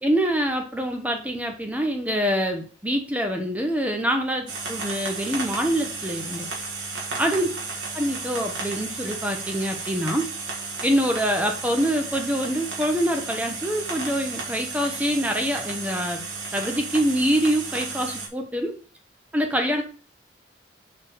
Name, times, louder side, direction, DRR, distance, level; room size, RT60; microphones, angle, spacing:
voice 1, 0.0-6.5 7.2-7.5 7.9-10.3 10.8-16.2 16.5-18.7 19.3-19.8, equal, 10° right, 4 dB, 1.0 m, -25 dB
sound 1, 4.5-18.3, right 4 dB, 80° right, 2.1 m, -33 dB
6.5 x 4.2 x 4.5 m, 0.39 s
head